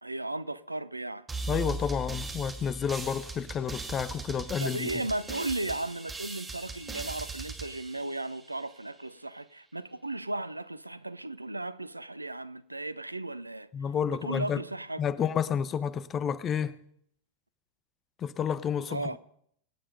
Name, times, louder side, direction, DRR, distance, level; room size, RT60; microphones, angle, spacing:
voice 1, 0.0-1.3 4.6-13.7 14.1-15.0 18.9-19.2, right 2 dB, 85° right, 0.6 m, -35 dB
sound 1, 1.3-8.8, right 3 dB, 15° right, 2.2 m, -39 dB
voice 2, 1.5-4.9 13.7-14.6 15.0-16.7 18.2-19.0, left 7 dB, 25° left, 0.8 m, -30 dB
25.0 x 8.9 x 5.3 m
figure-of-eight pair, 90°, 0 cm